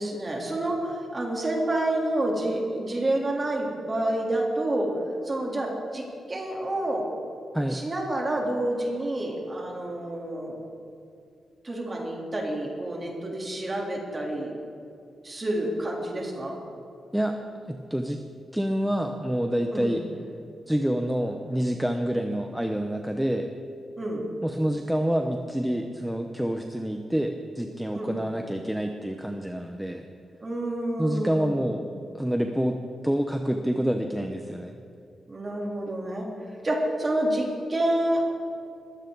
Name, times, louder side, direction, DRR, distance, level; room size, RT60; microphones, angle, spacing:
voice 1, 0.0-4.9 5.2-7.1 7.7-10.6 11.6-14.5 15.2-16.6 19.7-20.0 24.0-24.3 27.9-28.2 30.4-31.7 35.3-36.3 36.6-38.3, right 1 dB, 25° right, -1 dB, 3.3 m, -28 dB
voice 2, 17.7-18.2 18.5-20.0 20.7-23.5 24.4-30.0 31.0-31.9 32.1-34.7, equal, 5° right, 4 dB, 0.8 m, -27 dB
21.5 x 16.0 x 4.0 m, 2.5 s
wide cardioid pair, 140°, 0 cm